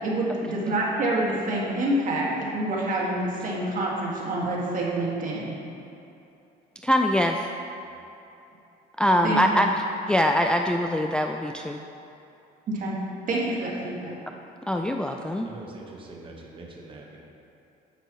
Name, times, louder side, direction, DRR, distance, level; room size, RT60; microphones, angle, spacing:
voice 1, 0.0-5.5 9.2-9.6 12.7-13.0 13.3-14.1, right 1 dB, 50° right, -4 dB, 2.0 m, -27 dB
voice 2, 6.8-7.5 9.0-9.7 10.1-11.8 14.7-15.5, equal, 5° left, 3 dB, 0.3 m, -23 dB
voice 3, 15.4-17.2, right 2 dB, 30° right, -1 dB, 1.3 m, -43 dB
10.0 x 7.6 x 3.1 m, 2.8 s
cardioid pair, 110°, 17 cm